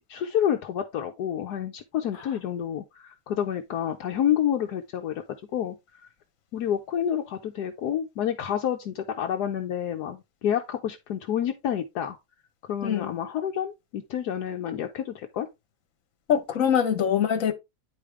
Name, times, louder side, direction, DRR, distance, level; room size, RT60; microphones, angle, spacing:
voice 1, 0.1-5.2 5.5-6.1 6.5-12.2 12.7-15.5, left 9 dB, 75° left, 1.3 m, -29 dB
voice 2, 12.8-13.2 16.3-17.5, left 8 dB, 55° left, 1.5 m, -23 dB
9.4 x 5.0 x 3.4 m
omnidirectional pair, 1.8 m